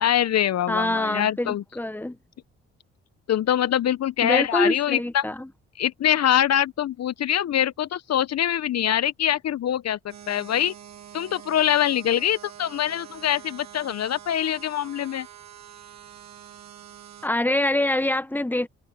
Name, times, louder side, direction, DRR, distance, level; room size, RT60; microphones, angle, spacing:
voice 1, 0.0-1.6 3.3-5.2 5.8-10.7 11.1-15.3, left 10 dB, 60° left, 1.0 m, -24 dB
voice 2, 0.7-2.2 4.2-5.5 17.2-18.7, left 1 dB, 5° left, 1.5 m, -25 dB
sound 1, 10.1-17.3, right 11 dB, 60° right, 2.5 m, -45 dB
hypercardioid pair, 45°, 30 cm